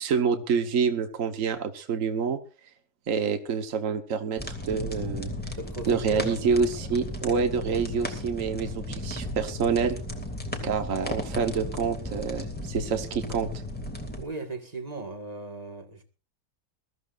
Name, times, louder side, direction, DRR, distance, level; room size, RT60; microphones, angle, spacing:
voice 1, 0.0-2.4 3.1-5.3 5.9-10.0 10.6-13.5, right 6 dB, 55° right, 1.6 m, -27 dB
sound 1, 4.4-14.2, left 1 dB, 5° left, 2.4 m, -35 dB
voice 2, 5.5-6.6 14.2-16.0, right 2 dB, 25° right, 1.9 m, -37 dB
22.0 x 14.5 x 2.5 m
omnidirectional pair, 1.7 m